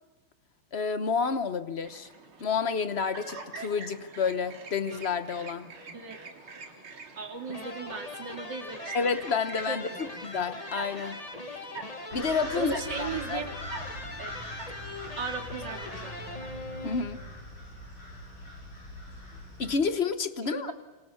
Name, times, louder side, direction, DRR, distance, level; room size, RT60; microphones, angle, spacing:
voice 1, 0.7-2.1 2.4-5.7 8.9-11.2 12.1-13.4 16.8-17.2 19.6-20.7, left 5 dB, 40° left, 1.1 m, -30 dB
Chirp tweet, 1.8-17.0, right 4 dB, 70° right, 3.8 m, -46 dB
voice 2, 7.1-9.1 9.7-10.0 12.5-13.6 14.2-14.3 15.2-16.4 20.4-20.7, right 5 dB, 55° right, 3.3 m, -37 dB
sound 1, 7.5-17.5, left 2 dB, 20° left, 1.8 m, -42 dB
sound 2, 12.1-19.8, left 1 dB, 75° left, 7.6 m, -42 dB
27.5 x 26.5 x 7.1 m
omnidirectional pair, 2.4 m